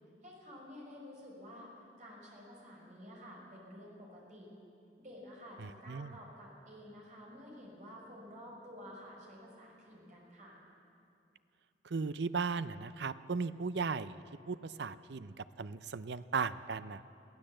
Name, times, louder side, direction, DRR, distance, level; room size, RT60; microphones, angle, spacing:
voice 1, 0.2-1.7 2.0-4.5 5.0-10.6, equal, 40° right, -2 dB, 5.2 m, -51 dB
voice 2, 5.6-6.1 11.8-17.1, right 4 dB, 65° right, 14 dB, 0.6 m, -37 dB
22.5 x 15.5 x 7.7 m, 2.6 s
head